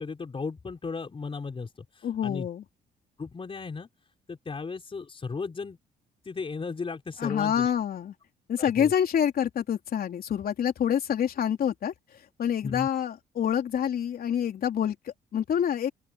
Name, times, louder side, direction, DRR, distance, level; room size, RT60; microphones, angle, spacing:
voice 1, 0.0-2.5 3.2-3.9 4.3-5.8 6.2-7.7 8.6-8.9 12.6-12.9, left 4 dB, 30° left, 4.6 m, -35 dB
voice 2, 2.0-2.6 7.2-8.1 8.5-11.9 12.4-15.0 15.3-15.9, left 9 dB, 60° left, 3.6 m, -27 dB
open air
cardioid pair, 90°, 18 cm